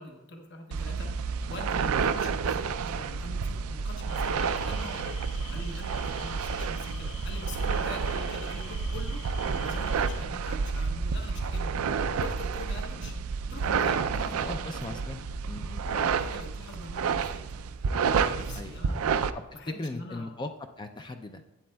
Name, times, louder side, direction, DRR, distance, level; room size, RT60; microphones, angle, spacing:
voice 1, 0.0-5.0 5.5-11.8 12.2-13.1 13.5-15.0 15.9-17.4 18.0-19.1 19.5-20.4, left 2 dB, 55° left, 3 dB, 1.0 m, -44 dB
sound 1, 0.7-19.3, right 5 dB, 90° right, 0.4 m, -30 dB
sound 2, 4.1-10.2, left 8 dB, 75° left, 1.4 m, -48 dB
voice 2, 14.4-16.0 18.5-18.8 19.5-20.5 20.8-21.4, left 2 dB, 20° left, 6 dB, 0.3 m, -38 dB
11.5 x 8.4 x 2.2 m, 0.98 s
head